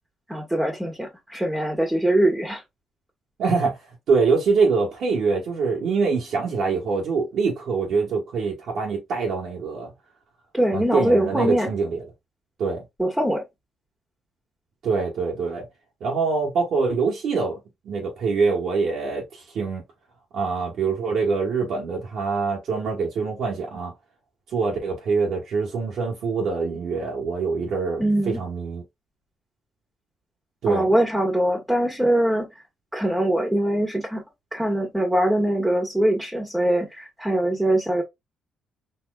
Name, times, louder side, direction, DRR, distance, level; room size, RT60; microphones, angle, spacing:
voice 1, 0.3-2.6 10.5-11.7 13.0-13.4 28.0-28.4 30.7-32.5 32.9-34.2 34.5-38.0, right 1 dB, 5° right, 1.5 m, -22 dB
voice 2, 3.4-3.8 4.1-9.9 10.7-12.0 12.6-12.8 14.8-15.7 16.0-17.6 17.8-19.8 20.3-23.9 24.5-28.8 30.6-30.9, right 4 dB, 70° right, 1.5 m, -24 dB
4.3 x 3.0 x 2.4 m
cardioid pair, 90°, 0 cm